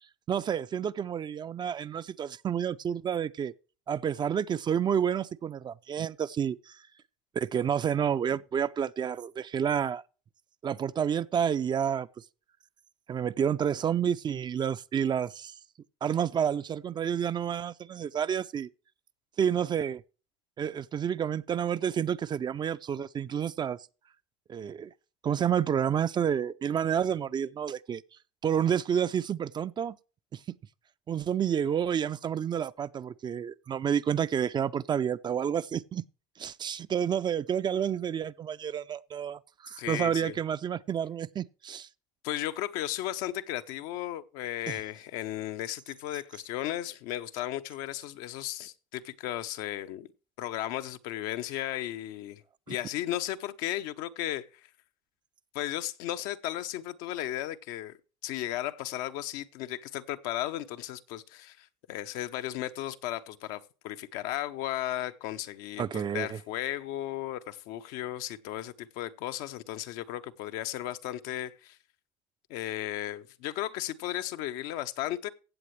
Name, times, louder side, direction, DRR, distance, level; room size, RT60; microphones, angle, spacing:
voice 1, 0.3-3.5 3.9-6.8 7.3-10.0 10.6-12.1 13.1-15.5 16.0-18.7 19.4-20.0 20.6-23.8 24.5-24.9 25.2-28.0 28.4-30.0 30.3-30.4 31.1-36.0 36.4-41.9 44.7-44.8 52.7-52.8 65.8-66.4, right 8 dB, 30° right, 0.4 m, -29 dB
voice 2, 39.7-40.4 42.2-50.1 50.4-52.4 52.7-54.5 55.5-58.0 58.2-71.8 72.5-75.3, left 13 dB, 75° left, 0.8 m, -35 dB
16.0 x 7.6 x 3.2 m
supercardioid pair, 105°, 15 cm